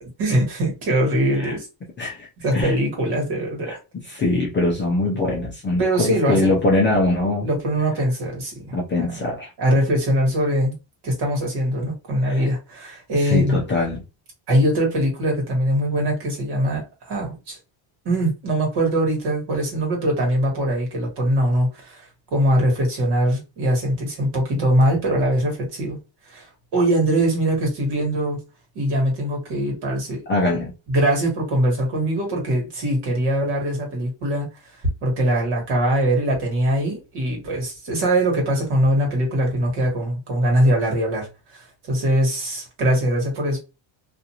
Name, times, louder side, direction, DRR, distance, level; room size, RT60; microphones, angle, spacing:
voice 1, 0.0-1.6 2.4-3.8 5.8-6.5 7.4-9.3 9.6-10.7 11.0-13.6 14.5-17.6 18.0-22.0 22.3-26.0 26.3-28.4 28.7-30.2 30.9-34.5 35.0-43.6, right 1 dB, 55° right, 1.4 m, -22 dB
voice 2, 2.0-2.3 2.5-2.8 3.7-7.5 8.7-9.5 12.2-12.5 13.2-14.0 30.3-30.7, left 2 dB, 25° left, 0.4 m, -22 dB
2.5 x 2.5 x 2.8 m
cardioid pair, 175°, 50 cm